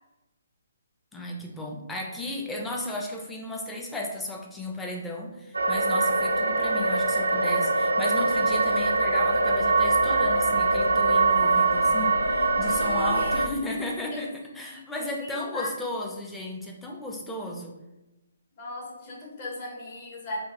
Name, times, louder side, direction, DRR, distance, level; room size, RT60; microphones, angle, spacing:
voice 1, 1.1-17.8, left 2 dB, 5° left, 0 dB, 0.5 m, -34 dB
sound 1, 5.5-13.5, right 3 dB, 90° right, 0.4 m, -23 dB
voice 2, 12.7-13.4 14.1-14.2 14.5-14.8 15.2-15.7 18.6-20.4, left 1 dB, 40° left, -3 dB, 1.0 m, -37 dB
3.4 x 2.1 x 3.0 m, 1.0 s
hypercardioid pair, 145°, 0 cm